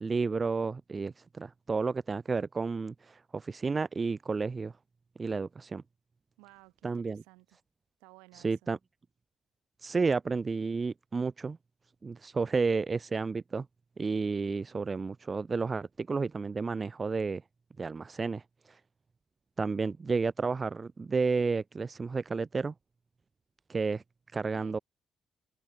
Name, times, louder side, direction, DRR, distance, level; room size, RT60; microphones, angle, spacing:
voice 1, 0.0-4.7 5.2-5.8 6.8-7.2 8.4-8.8 9.8-11.6 12.0-13.7 14.0-17.4 17.8-18.4 19.6-22.7 23.7-24.0 24.3-24.8, right 4 dB, 40° right, 0.6 m, -31 dB
voice 2, 6.4-7.6 8.0-8.7 24.5-24.8, right 28 dB, 85° right, 6.9 m, -56 dB
open air
hypercardioid pair, 45°, 0 cm